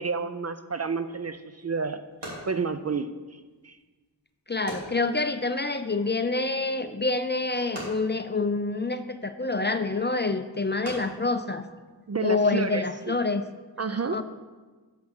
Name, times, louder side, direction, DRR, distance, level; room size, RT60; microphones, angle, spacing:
voice 1, 0.0-3.8 12.1-13.1 13.8-14.2, right 4 dB, 40° right, 11 dB, 0.4 m, -31 dB
sound 1, 1.3-12.5, right 1 dB, 70° right, 3.0 m, -46 dB
voice 2, 4.5-11.7 12.2-13.4 14.1-14.2, left 3 dB, 25° left, 9 dB, 0.4 m, -27 dB
7.4 x 5.9 x 6.5 m, 1.3 s
wide cardioid pair, 70°, 43 cm